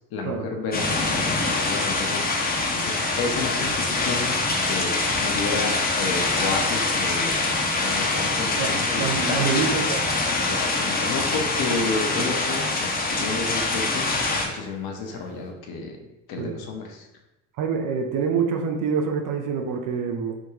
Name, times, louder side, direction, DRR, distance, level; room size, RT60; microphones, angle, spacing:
voice 1, 0.1-4.4 4.7-7.4 7.8-9.7 10.5-14.1 14.4-17.1, left 4 dB, 55° left, 2 dB, 0.8 m, -32 dB
sound 1, 0.7-14.5, left 3 dB, 20° left, 0.7 m, -24 dB
voice 2, 8.6-10.1 16.4-16.6 17.6-20.4, right 6 dB, 45° right, 4 dB, 0.6 m, -26 dB
sound 2, 9.0-10.0 10.4-15.5, right 3 dB, 80° right, 0.8 m, -43 dB
3.6 x 2.2 x 3.1 m, 0.96 s
hypercardioid pair, 70°, 43 cm